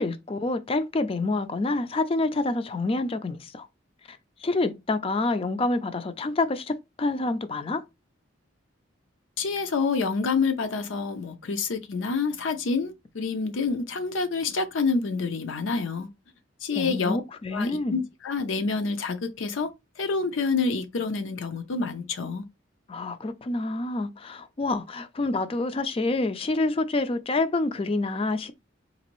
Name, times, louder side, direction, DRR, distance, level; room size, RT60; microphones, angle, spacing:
voice 1, 0.0-3.7 4.1-7.8 16.8-18.0 22.9-28.5, left 2 dB, 30° left, 0.4 m, -27 dB
voice 2, 9.4-16.1 16.6-17.2 17.5-19.7 20.0-22.4, left 4 dB, 75° left, 0.5 m, -27 dB
4.0 x 2.5 x 3.0 m
head